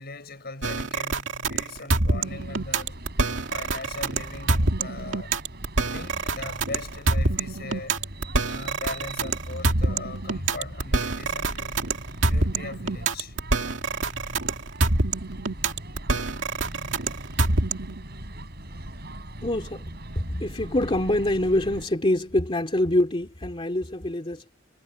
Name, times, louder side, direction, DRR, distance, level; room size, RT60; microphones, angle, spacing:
voice 1, 0.0-3.0 3.5-5.3 5.9-8.0 8.5-11.8 12.3-13.3, left 3 dB, 55° left, 6.2 m, -39 dB
sound 1, 0.6-18.0, right 3 dB, 75° right, 2.3 m, -26 dB
sound 2, 2.2-21.9, right 1 dB, 55° right, 7.7 m, -40 dB
voice 2, 19.4-19.9 20.2-24.4, left 1 dB, 30° left, 2.4 m, -25 dB
head